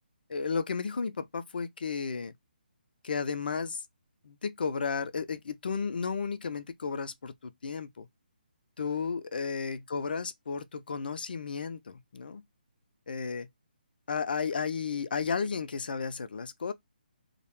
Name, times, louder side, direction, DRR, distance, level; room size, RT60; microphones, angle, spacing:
voice 1, 0.3-2.3 3.0-3.8 4.2-8.1 8.8-12.4 13.1-13.5 14.1-16.7, left 5 dB, 65° left, 0.4 m, -33 dB
2.2 x 2.1 x 3.0 m
figure-of-eight pair, 145°, 5 cm